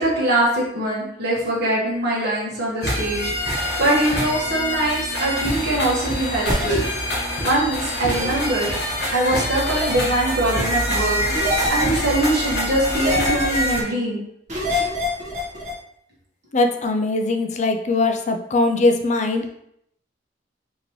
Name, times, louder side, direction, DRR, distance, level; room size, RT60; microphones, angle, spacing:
voice 1, 0.0-3.3 3.8-6.8 7.4-8.7 9.1-14.2, right 1 dB, 60° right, -5 dB, 1.5 m, -22 dB
sound 1, 2.8-13.8, left 1 dB, 65° left, 1.2 m, -25 dB
sound 2, 6.5-6.8 8.1-8.3 9.7-10.0 11.3-12.1 12.9-13.7 14.5-15.7, left 1 dB, 45° right, 1.5 m, -25 dB
voice 2, 16.5-19.5, left 2 dB, 40° left, 6 dB, 0.5 m, -20 dB
5.0 x 2.9 x 3.2 m, 0.73 s
head